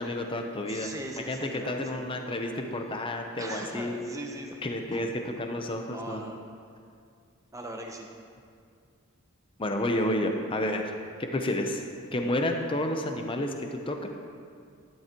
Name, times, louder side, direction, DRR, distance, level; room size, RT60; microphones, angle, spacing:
voice 1, 0.0-0.9 1.2-3.9 4.6-6.2 9.6-10.9 11.2-11.8 12.1-14.1, left 1 dB, 25° left, 4 dB, 0.7 m, -30 dB
voice 2, 0.7-2.1 3.4-5.0 5.9-6.4 7.5-8.1, right 1 dB, 15° right, 2 dB, 0.9 m, -40 dB
12.5 x 11.0 x 3.0 m, 2.2 s
head